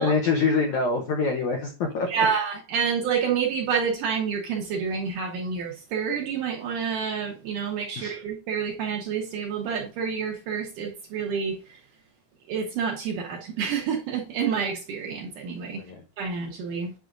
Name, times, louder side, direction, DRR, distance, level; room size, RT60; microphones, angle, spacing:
voice 1, 0.0-2.1 8.0-8.2 15.8-16.0, left 4 dB, 85° left, 1.6 m, -25 dB
voice 2, 2.1-11.8 12.5-15.9 16.2-16.9, right 6 dB, 75° right, 2.0 m, -28 dB
8.3 x 5.9 x 2.5 m
omnidirectional pair, 4.6 m